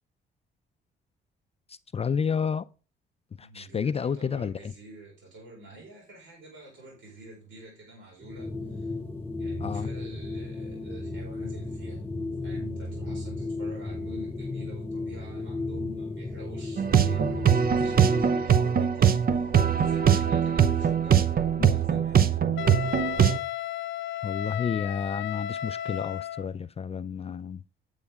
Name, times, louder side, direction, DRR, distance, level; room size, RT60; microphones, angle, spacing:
voice 1, 1.7-2.6 3.4-4.7 9.6-9.9 21.6-21.7 24.2-27.6, left 6 dB, 30° left, 0.4 m, -30 dB
voice 2, 3.4-8.9 9.4-12.0 12.4-22.4, right 2 dB, 75° right, 5.0 m, -48 dB
sound 1, 8.2-18.5, left 2 dB, 10° left, 2.2 m, -34 dB
sound 2, 16.8-23.4, right 8 dB, 50° right, 0.7 m, -22 dB
Wind instrument woodwind instrument, 22.6-26.5, left 11 dB, 70° left, 0.7 m, -33 dB
8.9 x 8.4 x 3.5 m
cardioid pair, 90°, 20 cm